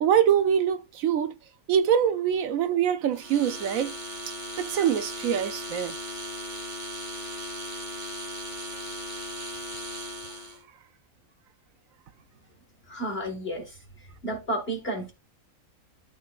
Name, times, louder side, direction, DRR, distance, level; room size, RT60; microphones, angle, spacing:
voice 1, 0.0-1.3 1.7-3.9 4.6-5.9, right 9 dB, 70° right, 1.0 m, -24 dB
sound 1, 3.1-10.6, equal, 30° right, 2.1 m, -37 dB
voice 2, 12.9-15.1, right 1 dB, 40° left, 1.8 m, -32 dB
12.5 x 4.2 x 2.4 m
omnidirectional pair, 1.6 m